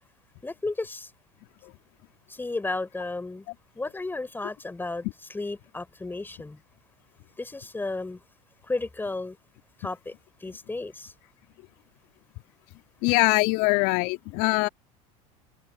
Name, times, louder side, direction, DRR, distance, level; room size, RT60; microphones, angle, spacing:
voice 1, 0.4-1.1 2.3-3.5 3.8-6.6 7.4-8.2 8.6-9.4 9.8-10.1 10.4-11.1, left 2 dB, 10° left, 3.9 m, -33 dB
voice 2, 13.0-14.7, left 25 dB, 60° left, 2.8 m, -23 dB
open air
hypercardioid pair, 85°, 19 cm